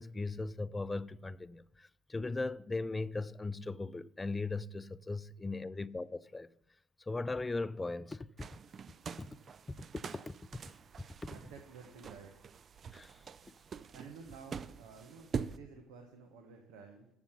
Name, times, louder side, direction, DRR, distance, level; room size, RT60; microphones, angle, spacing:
voice 1, 0.0-6.5 7.1-8.3 9.2-9.3 9.7-9.8 10.0-10.3 12.9-13.2, left 3 dB, 20° left, 0.4 m, -38 dB
sound 1, 8.4-15.6, right 6 dB, 40° right, 0.4 m, -45 dB
voice 2, 11.3-12.3 13.9-17.1, right 5 dB, 75° right, 1.1 m, -52 dB
7.1 x 7.0 x 8.2 m
hypercardioid pair, 65°, 0 cm